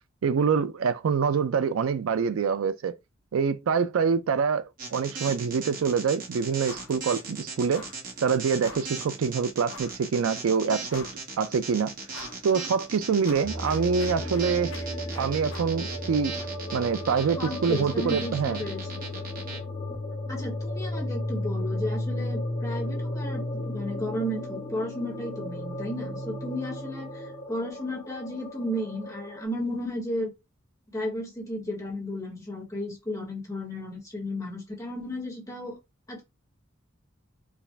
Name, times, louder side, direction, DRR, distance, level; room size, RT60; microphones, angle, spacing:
voice 1, 0.2-2.9 3.3-7.8 8.2-11.1 11.4-11.9 12.4-14.7 15.2-16.3 16.7-18.6, right 6 dB, 90° right, 0.4 m, -25 dB
sound 1, 4.8-19.6, right 4 dB, 40° right, 1.4 m, -38 dB
sound 2, 6.6-7.0 7.2-7.4 7.7-8.1 8.6-9.0 9.6-10.0 10.5-10.6 10.9-11.4 12.1-12.4 12.8-15.8, left 4 dB, 75° left, 0.9 m, -46 dB
sound 3, 13.4-29.4, left 1 dB, 40° left, 1.4 m, -34 dB
voice 2, 17.1-18.8 20.3-30.3 30.9-35.8 36.1-36.2, left 1 dB, 15° left, 1.3 m, -34 dB
4.7 x 2.4 x 3.3 m
head